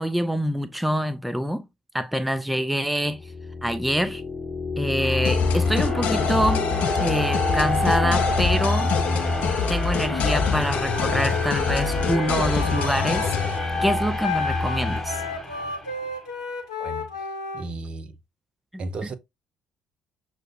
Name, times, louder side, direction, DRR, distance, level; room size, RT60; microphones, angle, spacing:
voice 1, 0.0-1.6 1.9-3.2 3.6-4.2 4.8-6.7 7.0-8.9 9.7-13.3 13.8-15.2, equal, ahead, 0.5 m, -25 dB
sound 1, 3.2-16.1, left 2 dB, 15° left, 1.1 m, -27 dB
sound 2, 5.2-13.6, left 7 dB, 60° left, 0.5 m, -27 dB
Wind instrument woodwind instrument, 10.9-17.7, left 3 dB, 80° left, 0.9 m, -32 dB
voice 2, 16.8-17.3 17.5-18.2 18.8-19.1, right 3 dB, 45° right, 0.7 m, -34 dB
6.2 x 2.2 x 2.6 m
figure-of-eight pair, 50°, 3 cm